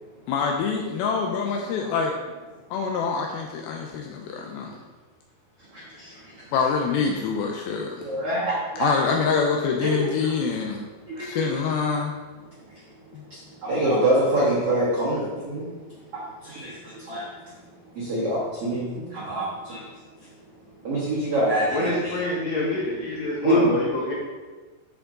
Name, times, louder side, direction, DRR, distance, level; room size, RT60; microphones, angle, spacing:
voice 1, 0.3-2.2 2.7-4.8 6.5-8.1 8.8-10.8 11.2-12.1 13.1-13.2, left 5 dB, 80° left, 2 dB, 2.2 m, -25 dB
voice 2, 8.0-8.9 9.8-10.3 11.2-11.5 13.6-15.6 16.1-16.7 17.1-17.2 18.0-19.8 20.8-22.2 23.4-23.8, right 1 dB, 60° right, -7 dB, 1.6 m, -25 dB
voice 3, 21.7-24.1, left 2 dB, 60° left, -4 dB, 1.9 m, -26 dB
8.0 x 7.0 x 3.8 m, 1.3 s
omnidirectional pair, 4.9 m